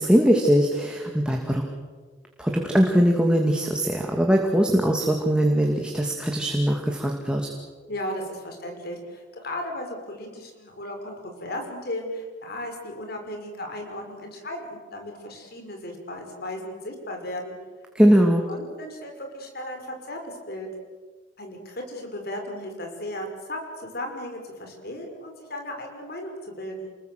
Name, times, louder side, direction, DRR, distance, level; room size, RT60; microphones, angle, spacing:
voice 1, 0.0-1.6 2.4-7.5 17.9-18.4, equal, 5° right, 1 dB, 2.4 m, -21 dB
voice 2, 7.9-17.6 18.5-20.7 21.4-26.9, left 1 dB, 55° left, 3 dB, 5.7 m, -35 dB
28.5 x 21.0 x 7.9 m, 1.5 s
head